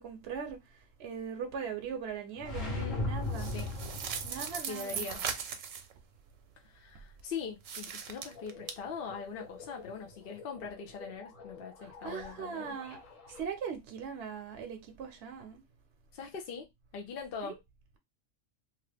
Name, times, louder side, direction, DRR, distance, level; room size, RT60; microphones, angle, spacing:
voice 1, 0.0-3.5 4.2-5.1 11.8-13.0 13.3-15.6 17.4-17.6, right 7 dB, 65° right, 0.8 m, -40 dB
sound 1, 2.4-4.6, left 2 dB, 40° left, 1.1 m, -36 dB
voice 2, 2.6-3.1 3.4-3.7 4.7-5.4 6.6-12.7 16.1-16.7 16.9-17.5, left 6 dB, 60° left, 0.6 m, -42 dB
sound 2, 3.3-5.9 7.6-8.7, right 7 dB, 85° right, 1.0 m, -38 dB
sound 3, 8.3-13.4, left 5 dB, 90° left, 1.2 m, -51 dB
2.9 x 2.4 x 3.2 m
omnidirectional pair, 1.3 m